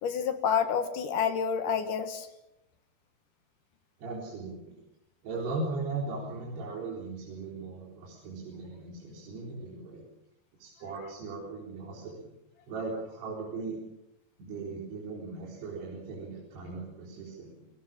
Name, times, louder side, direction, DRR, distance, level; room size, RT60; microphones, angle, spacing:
voice 1, 0.0-2.3, left 7 dB, 60° left, 9 dB, 2.5 m, -28 dB
voice 2, 4.0-4.8 5.2-10.1 10.6-12.3 12.7-13.8 14.4-17.7, right 3 dB, 75° right, -3 dB, 6.0 m, -38 dB
27.5 x 18.5 x 7.4 m, 0.88 s
omnidirectional pair, 4.8 m